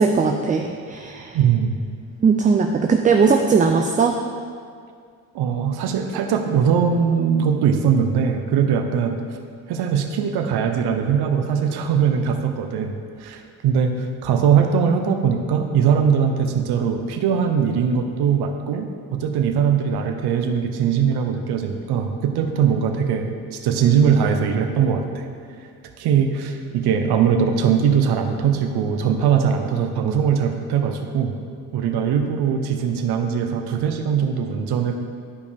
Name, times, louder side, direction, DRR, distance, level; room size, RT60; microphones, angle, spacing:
voice 1, 0.0-1.4 2.2-4.2, right 5 dB, 20° right, 4 dB, 0.3 m, -18 dB
voice 2, 1.3-1.8 5.3-9.2 9.7-25.2 26.0-31.3 31.7-34.9, right 7 dB, 80° right, 5 dB, 0.7 m, -21 dB
11.5 x 5.2 x 3.4 m, 2.2 s
cardioid pair, 105°, 39 cm